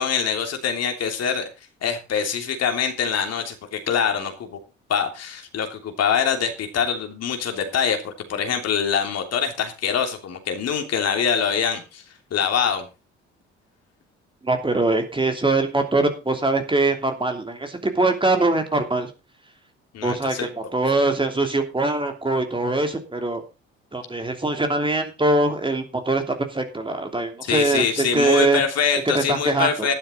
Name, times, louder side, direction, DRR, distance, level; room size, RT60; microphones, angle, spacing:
voice 1, 0.0-1.5 1.8-4.6 4.9-12.0 12.3-12.8 19.9-20.5 27.5-29.9, left 7 dB, 50° left, 5 dB, 3.2 m, -24 dB
voice 2, 14.4-19.1 20.0-23.4 23.9-28.6 29.1-29.9, right 2 dB, 15° right, 5 dB, 3.0 m, -22 dB
12.5 x 12.0 x 4.0 m, 0.30 s
figure-of-eight pair, 50°, 34 cm